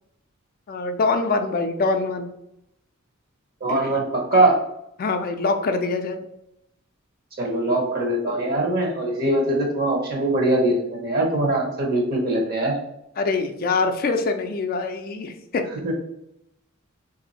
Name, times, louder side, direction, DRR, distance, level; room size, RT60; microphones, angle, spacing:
voice 1, 0.7-2.3 3.7-4.1 5.0-6.2 13.2-15.7, left 3 dB, 45° left, 6 dB, 0.4 m, -24 dB
voice 2, 3.6-4.6 7.4-12.8 15.8-15.9, right 2 dB, 50° right, 0 dB, 0.9 m, -22 dB
3.2 x 2.6 x 4.0 m, 0.81 s
head